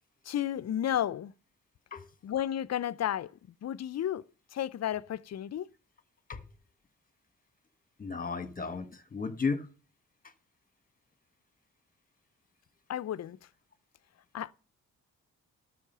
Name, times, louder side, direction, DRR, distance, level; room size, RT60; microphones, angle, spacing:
voice 1, 0.3-1.3 2.2-3.3 3.6-4.2 4.5-5.7 12.9-13.4 14.3-14.5, left 11 dB, 55° left, 0.6 m, -32 dB
voice 2, 8.0-9.7, left 4 dB, 25° left, 1.4 m, -34 dB
12.0 x 6.3 x 6.7 m
cardioid pair, 65°, 32 cm